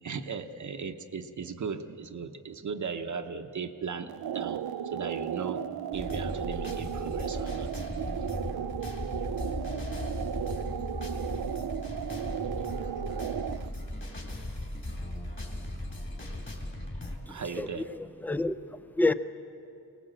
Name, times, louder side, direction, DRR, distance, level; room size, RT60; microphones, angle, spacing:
voice 1, 0.0-5.7 5.9-7.7 17.3-17.9, right 5 dB, 55° right, 7 dB, 0.9 m, -37 dB
sound 1, 4.1-13.7, right 9 dB, 90° right, 0.6 m, -35 dB
sound 2, 5.9-17.2, left 1 dB, 35° left, 2.8 m, -37 dB
voice 2, 17.3-19.1, left 2 dB, 5° left, 11 dB, 0.5 m, -30 dB
22.5 x 18.5 x 7.7 m, 2.6 s
wide cardioid pair, 160°, 36 cm